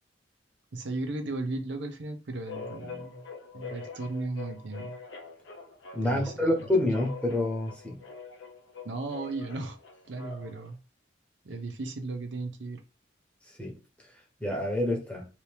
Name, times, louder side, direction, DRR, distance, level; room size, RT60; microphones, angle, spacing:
voice 1, 0.7-3.2 3.5-5.0 6.0-6.6 8.8-9.8 10.0-10.8 11.4-12.8, right 2 dB, 70° right, 0.6 m, -36 dB
sound 1, 2.5-10.7, left 4 dB, 70° left, 0.7 m, -44 dB
voice 2, 5.9-8.0 13.6-13.8 14.4-15.3, left 1 dB, 5° left, 0.9 m, -27 dB
2.9 x 2.7 x 3.2 m
head